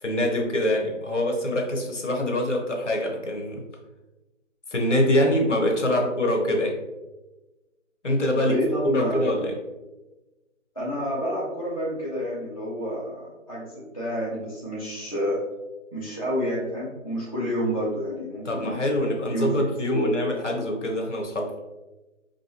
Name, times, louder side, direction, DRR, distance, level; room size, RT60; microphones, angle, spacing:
voice 1, 0.0-3.6 4.7-6.7 8.0-8.5 8.8-9.5 18.4-21.5, left 1 dB, 65° left, 1 dB, 1.1 m, -24 dB
voice 2, 8.4-9.5 10.7-15.4 15.9-18.8 19.3-19.6 19.9-20.1, equal, 30° left, -7 dB, 0.6 m, -29 dB
5.0 x 2.7 x 2.9 m, 1.1 s
figure-of-eight pair, 170°, 39 cm